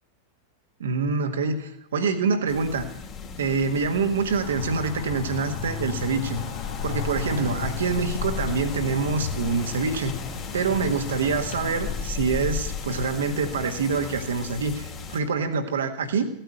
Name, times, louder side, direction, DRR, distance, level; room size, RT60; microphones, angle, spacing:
voice 1, 0.8-2.9 3.4-6.4 6.8-10.1 10.5-16.3, right 4 dB, 65° right, 6 dB, 1.7 m, -26 dB
sound 1, 2.5-15.2, left 6 dB, 30° left, 2.5 m, -36 dB
sound 2, 4.4-11.9, left 7 dB, 55° left, 2.2 m, -34 dB
16.0 x 9.0 x 8.1 m, 0.78 s
figure-of-eight pair, 90°, 0 cm